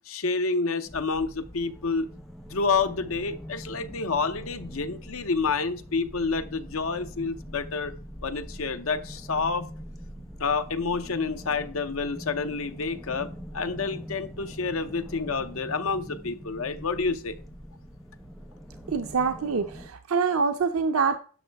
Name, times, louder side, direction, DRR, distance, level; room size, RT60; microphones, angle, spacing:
voice 1, 0.1-2.1 2.5-7.9 8.2-9.7 10.4-17.3, left 4 dB, 80° left, 0.8 m, -29 dB
sound 1, 0.8-19.9, equal, ahead, 1.2 m, -43 dB
voice 2, 18.9-21.2, right 5 dB, 90° right, 0.6 m, -25 dB
11.0 x 6.4 x 3.4 m
head